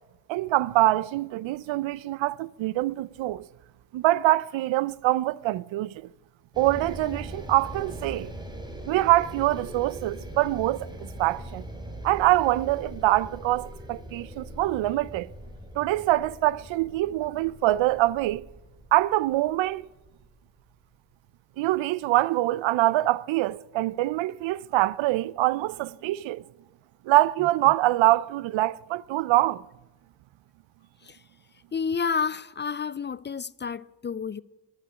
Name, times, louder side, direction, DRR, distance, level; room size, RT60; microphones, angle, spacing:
voice 1, 0.3-3.5 3.9-6.1 6.6-8.3 8.9-11.6 12.0-15.3 15.8-18.5 18.9-19.8 21.6-26.4 27.0-29.7, right 16 dB, 85° right, 0.6 m, -24 dB
sound 1, 6.5-20.8, right 1 dB, 10° right, 2.6 m, -41 dB
voice 2, 31.7-34.4, left 6 dB, 25° left, 0.4 m, -30 dB
11.0 x 9.1 x 9.8 m
cardioid pair, 85°, 44 cm